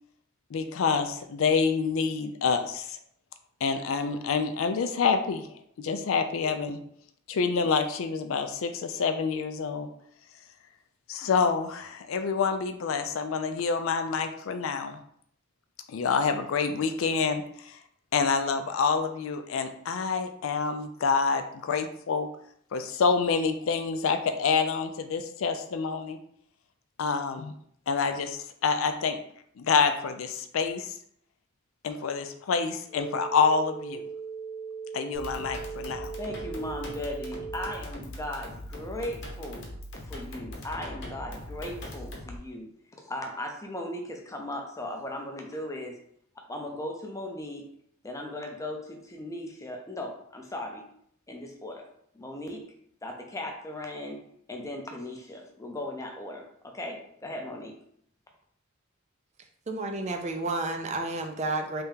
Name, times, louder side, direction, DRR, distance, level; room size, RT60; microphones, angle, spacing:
voice 1, 0.5-3.0 3.6-5.5 5.8-6.8 7.3-9.9 11.1-15.0 15.9-17.8 18.1-22.3 22.7-26.2 27.0-27.5 27.9-29.2 29.6-30.9 31.8-34.0 34.9-36.1, left 5 dB, 75° left, 8 dB, 0.4 m, -27 dB
sound 1, 32.9-37.9, right 6 dB, 10° right, 1.0 m, -39 dB
sound 2, 35.1-42.4, left 1 dB, 60° left, 0.9 m, -41 dB
voice 2, 36.2-39.7 40.1-42.7 43.0-46.0 46.5-47.7 48.0-50.8 51.3-51.9 52.1-52.6 53.0-54.2 54.5-57.7, left 1 dB, 15° left, 2 dB, 0.6 m, -37 dB
voice 3, 59.7-61.8, right 2 dB, 35° right, 4 dB, 0.5 m, -31 dB
3.4 x 2.8 x 3.5 m, 0.67 s
head